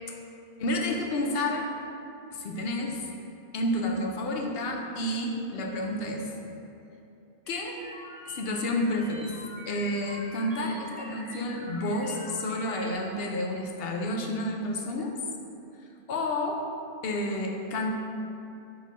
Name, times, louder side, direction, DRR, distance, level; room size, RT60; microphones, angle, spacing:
voice 1, 0.6-1.7 2.3-3.1 3.5-6.3 7.5-7.8 8.3-9.4 9.7-15.1 16.1-16.6 17.0-17.9, left 1 dB, 70° left, 1 dB, 0.9 m, -30 dB
sound 1, 7.5-12.9, equal, 25° left, 1.1 m, -45 dB
5.3 x 3.5 x 5.0 m, 2.7 s
omnidirectional pair, 1.1 m